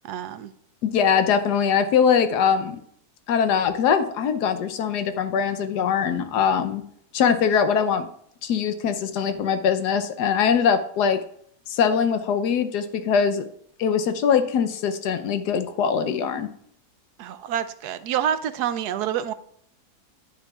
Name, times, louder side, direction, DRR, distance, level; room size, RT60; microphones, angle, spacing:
voice 1, 0.0-0.5 17.2-19.3, right 9 dB, 80° right, 13 dB, 1.1 m, -27 dB
voice 2, 0.8-2.8 3.3-6.8 7.1-8.1 8.4-11.2 11.7-13.5 13.8-16.5, left 7 dB, 90° left, 9 dB, 1.3 m, -22 dB
10.5 x 9.7 x 2.4 m, 0.66 s
omnidirectional pair, 1.7 m